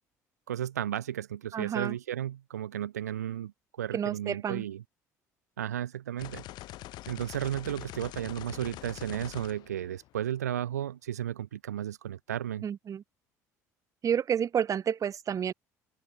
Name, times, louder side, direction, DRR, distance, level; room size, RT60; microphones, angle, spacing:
voice 1, 0.5-3.5 3.8-4.8 5.6-6.4 7.1-12.7, right 11 dB, 75° right, 1.6 m, -34 dB
voice 2, 1.5-2.0 3.9-4.6 12.6-13.0 14.0-15.5, right 8 dB, 40° right, 2.4 m, -30 dB
sound 1, 6.2-10.4, left 16 dB, 55° left, 1.8 m, -44 dB
open air
figure-of-eight pair, 55°, 9 cm